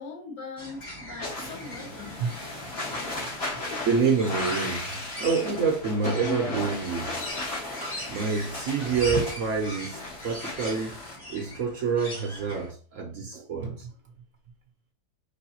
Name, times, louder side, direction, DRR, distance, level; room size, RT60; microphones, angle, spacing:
voice 1, 0.0-2.2, left 4 dB, 80° left, 2.3 m, -40 dB
sound 1, 0.6-12.7, equal, 20° left, 1.3 m, -40 dB
sound 2, 1.2-11.2, left 2 dB, 55° left, 2.7 m, -35 dB
voice 2, 3.9-7.2 8.1-11.0 11.3-13.9, right 5 dB, 65° right, 0.8 m, -27 dB
5.4 x 3.3 x 2.9 m
omnidirectional pair, 1.8 m